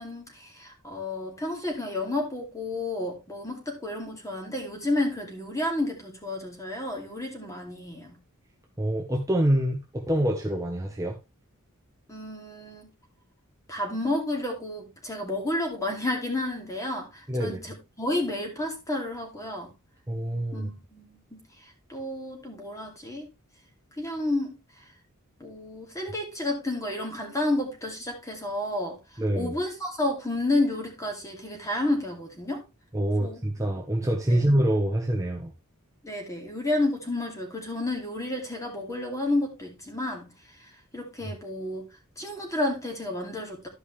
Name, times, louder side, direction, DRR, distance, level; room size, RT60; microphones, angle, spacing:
voice 1, 0.0-8.2 12.1-12.9 13.7-19.7 20.5-21.4 21.9-23.3 24.0-24.6 25.4-29.0 29.3-32.6 33.2-33.4 34.3-34.4 36.0-40.3 40.9-41.9 42.2-43.7, left 1 dB, 15° left, 2.5 m, -31 dB
voice 2, 8.8-11.2 17.3-17.6 20.1-20.7 29.2-29.6 32.9-35.5, right 1 dB, 15° right, 1.0 m, -26 dB
13.0 x 5.4 x 3.2 m
head